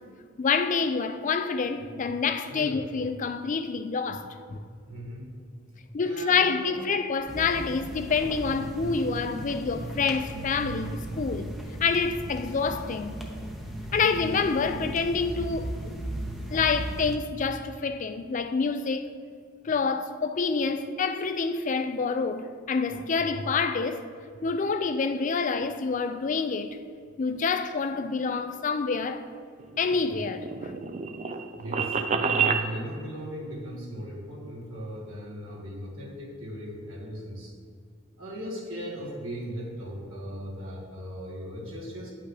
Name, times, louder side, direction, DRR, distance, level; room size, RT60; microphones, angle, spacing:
voice 1, 0.4-4.6 5.9-11.5 11.8-13.2 13.9-15.7 16.5-19.1 19.6-24.0 24.4-26.8 27.2-29.2 29.8-30.7, left 5 dB, 40° left, 0.4 m, -27 dB
voice 2, 2.5-2.8 4.9-5.3 6.0-6.9 31.6-37.5 38.2-42.1, equal, 85° right, 2.0 m, -38 dB
sound 1, 7.3-17.2, right 1 dB, ahead, 0.7 m, -36 dB
sound 2, 29.6-32.7, right 6 dB, 35° right, 0.4 m, -28 dB
9.7 x 5.7 x 3.3 m
head